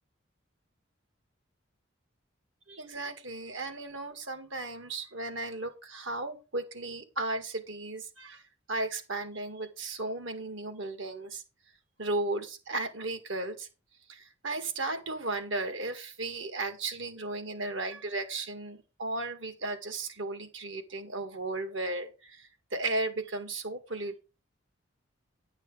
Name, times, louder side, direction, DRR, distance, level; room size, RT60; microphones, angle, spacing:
voice 1, 2.7-8.4 8.7-11.4 12.0-13.7 14.1-24.2, right 2 dB, 70° right, 8 dB, 2.0 m, -35 dB
11.0 x 6.3 x 4.9 m, 0.29 s
head